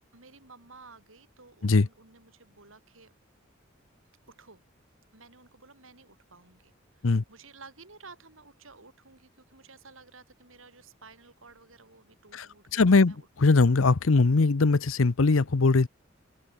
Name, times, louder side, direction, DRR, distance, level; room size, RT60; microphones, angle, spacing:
voice 1, 0.1-3.1 4.3-4.6 5.1-13.3, right 4 dB, 80° right, 5.2 m, -53 dB
voice 2, 12.7-15.9, left 3 dB, 90° left, 0.8 m, -21 dB
open air
head